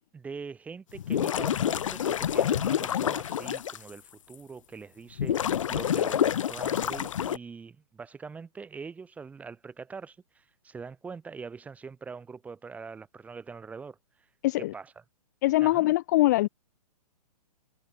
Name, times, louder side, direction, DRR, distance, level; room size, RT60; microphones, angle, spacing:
voice 1, 0.1-14.0 14.6-14.9 15.6-15.8, right 5 dB, 5° right, 0.7 m, -43 dB
sound 1, 1.0-3.8 4.3-4.4 5.2-7.4, left 9 dB, 55° left, 0.7 m, -27 dB
voice 2, 14.4-14.7 15.4-16.5, left 17 dB, 30° left, 0.4 m, -23 dB
figure-of-eight pair, 115°, 20 cm